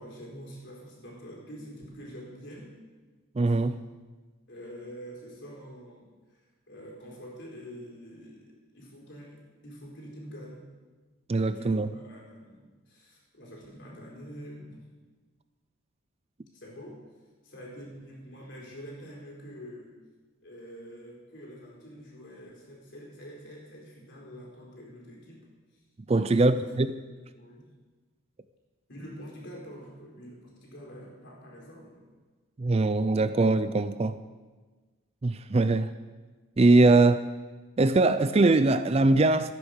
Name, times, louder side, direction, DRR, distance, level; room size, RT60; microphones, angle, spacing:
voice 1, 0.0-2.7 3.5-3.6 4.5-6.4 6.7-10.7 11.3-14.9 16.5-17.0 17.4-20.0 20.4-25.5 25.7-25.8 26.1-27.7 28.9-32.0, equal, 55° left, -2 dB, 4.2 m, -46 dB
voice 2, 3.4-3.8 11.3-11.9 26.1-27.0 32.6-34.2 35.2-35.9 36.6-37.2 37.8-39.5, right 2 dB, 30° right, 12 dB, 0.4 m, -22 dB
14.0 x 9.7 x 6.5 m, 1.3 s
head